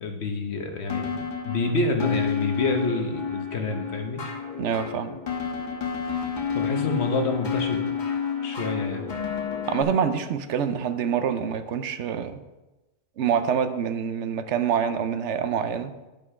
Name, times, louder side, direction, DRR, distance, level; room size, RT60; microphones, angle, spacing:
voice 1, 0.0-4.2 6.5-7.9 8.4-9.0, left 3 dB, 70° left, 5 dB, 1.2 m, -28 dB
sound 1, 0.9-9.8, left 7 dB, 45° left, 1.2 m, -30 dB
voice 2, 4.6-5.2 9.7-12.4 13.2-16.0, right 7 dB, 80° right, 10 dB, 1.0 m, -26 dB
10.5 x 5.4 x 4.8 m, 1.1 s
omnidirectional pair, 1.2 m